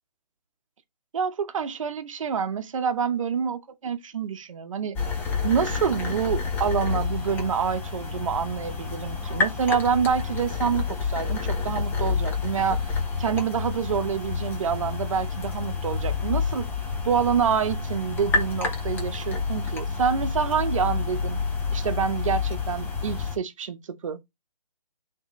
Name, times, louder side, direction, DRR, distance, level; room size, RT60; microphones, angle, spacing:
voice 1, 1.1-5.0 5.4-16.7 17.0-21.4 21.7-24.2, right 7 dB, 50° right, 1.0 m, -27 dB
sound 1, 5.0-23.4, left 5 dB, 10° left, 0.8 m, -29 dB
9.0 x 3.8 x 3.1 m
figure-of-eight pair, 150°, 21 cm